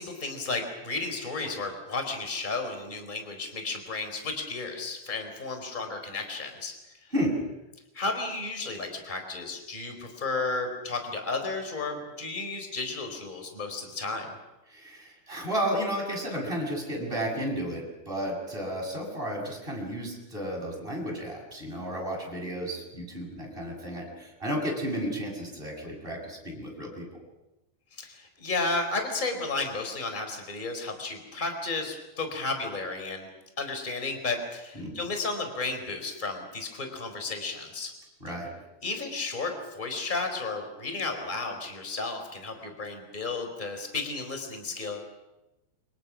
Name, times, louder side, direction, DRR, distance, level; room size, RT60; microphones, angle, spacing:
voice 1, 0.0-6.7 7.9-14.3 27.9-33.3 33.6-37.9 38.8-45.1, left 3 dB, 10° left, 6 dB, 3.9 m, -33 dB
voice 2, 14.7-27.1 34.7-34.9 38.2-38.5, equal, 10° right, -1 dB, 7.8 m, -32 dB
29.5 x 25.5 x 6.3 m, 0.98 s
omnidirectional pair, 4.8 m